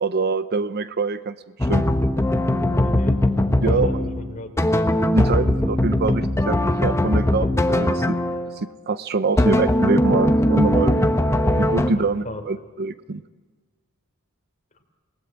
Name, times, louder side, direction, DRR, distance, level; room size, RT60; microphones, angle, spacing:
voice 1, 0.0-1.4 1.6-1.8 3.6-3.9 5.1-8.2 8.6-11.1 11.5-13.2, right 3 dB, 50° right, 13 dB, 0.7 m, -24 dB
sound 1, 1.6-8.6 9.4-11.9, left 1 dB, 15° left, 1.1 m, -20 dB
voice 2, 2.8-3.2 3.6-4.5 11.9-12.4, left 1 dB, 35° left, 5 dB, 3.4 m, -33 dB
28.5 x 19.5 x 8.8 m, 1.4 s
head